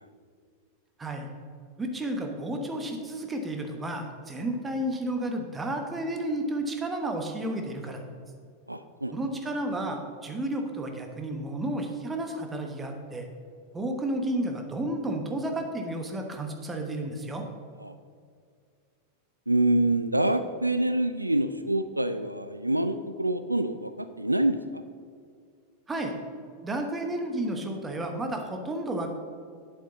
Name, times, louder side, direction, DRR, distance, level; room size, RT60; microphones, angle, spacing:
voice 1, 1.8-8.0 9.1-13.3 13.7-17.4 25.9-26.1 26.6-29.1, right 1 dB, 15° right, 4 dB, 1.1 m, -32 dB
voice 2, 8.7-9.1 17.8-17.9 19.5-24.6, right 1 dB, 85° right, 11 dB, 0.3 m, -26 dB
8.6 x 7.5 x 3.9 m, 2.2 s
figure-of-eight pair, 90°, 0 cm